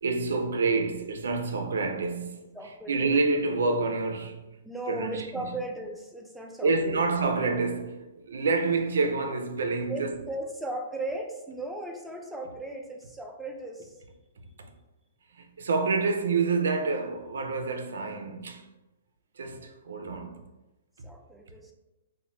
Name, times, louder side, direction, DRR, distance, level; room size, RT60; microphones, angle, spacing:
voice 1, 0.0-2.4 2.9-4.4 4.9-5.5 6.6-10.1 15.4-18.7 19.4-20.4, right 4 dB, 80° right, 0.4 m, -28 dB
voice 2, 2.5-3.2 4.6-7.0 9.9-14.0 21.0-21.7, right 1 dB, 5° right, 0.3 m, -37 dB
3.0 x 2.1 x 2.9 m
hypercardioid pair, 150°, 0 cm